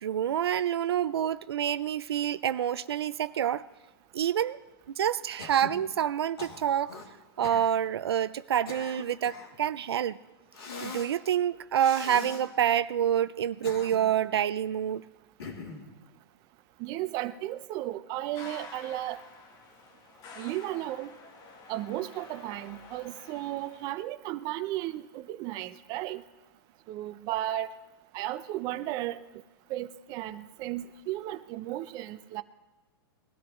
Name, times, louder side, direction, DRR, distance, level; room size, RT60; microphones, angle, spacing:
voice 1, 0.0-3.7 4.1-4.6 5.0-6.9 7.4-10.2 10.8-15.0, right 10 dB, 80° right, 14 dB, 0.5 m, -27 dB
Cough, 5.4-5.8 6.4-7.1 7.4-7.7 8.4-9.6 10.5-11.1 11.8-12.4 13.4-14.2 15.4-15.9, left 4 dB, 75° left, 2.8 m, -42 dB
voice 2, 16.8-19.2 20.4-21.1 21.7-26.2 26.9-27.7 28.1-29.2 29.7-32.4, right 14 dB, 30° right, 11 dB, 0.6 m, -34 dB
sound 1, 18.3-23.9, left 4 dB, 30° left, 1.4 m, -49 dB
20.5 x 13.0 x 3.1 m, 1.2 s
hypercardioid pair, 140°, 13 cm